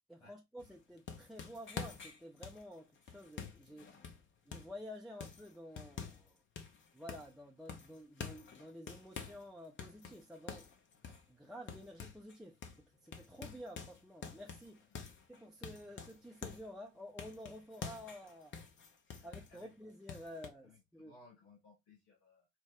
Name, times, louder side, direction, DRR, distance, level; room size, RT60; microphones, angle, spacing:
voice 1, 0.1-4.0 4.5-6.4 6.9-10.7 11.3-14.8 15.3-18.6 19.2-21.2, equal, ahead, 0.6 m, -51 dB
sound 1, 0.6-4.8 5.2-6.3 6.6-7.4 7.7-9.5 9.8-12.4 12.6-12.8 13.1-16.7 17.2-19.7 20.1-20.5, left 6 dB, 35° left, 0.8 m, -48 dB
voice 2, 19.2-19.7 20.6-22.5, left 3 dB, 60° left, 1.2 m, -62 dB
4.5 x 2.1 x 3.7 m
figure-of-eight pair, 50°, 33 cm